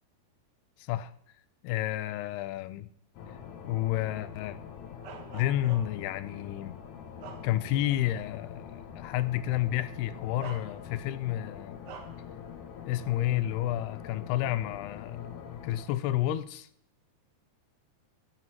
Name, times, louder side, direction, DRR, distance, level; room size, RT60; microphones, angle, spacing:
voice 1, 0.8-1.1 1.6-2.9 3.6-4.6 5.3-6.8 7.4-11.8 12.9-16.7, left 13 dB, 85° left, 2.6 m, -30 dB
sound 1, 3.1-15.9, left 8 dB, 65° left, 2.2 m, -45 dB
Bark, 5.0-6.1 6.7-8.0 8.4-8.6 9.7-9.8 10.4-11.2 11.8-12.3, right 7 dB, 65° right, 2.1 m, -47 dB
11.0 x 7.8 x 5.9 m
omnidirectional pair, 4.7 m